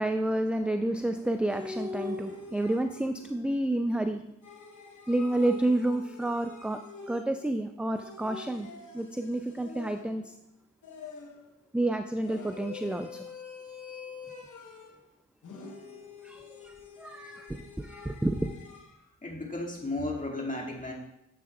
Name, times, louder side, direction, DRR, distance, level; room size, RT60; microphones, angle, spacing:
voice 1, 0.0-4.2 5.1-6.8 7.1-8.7 8.9-10.3 11.7-13.3 16.2-18.5, right 1 dB, 5° right, 7 dB, 0.3 m, -30 dB
sound 1, 1.5-3.2 4.4-7.5 8.0-10.3 10.8-11.5 12.2-15.0 15.4-19.0, left 4 dB, 70° left, 1.1 m, -44 dB
voice 2, 19.2-20.9, left 2 dB, 25° left, -1 dB, 2.0 m, -34 dB
7.4 x 6.8 x 2.3 m, 0.81 s
supercardioid pair, 40°, 32 cm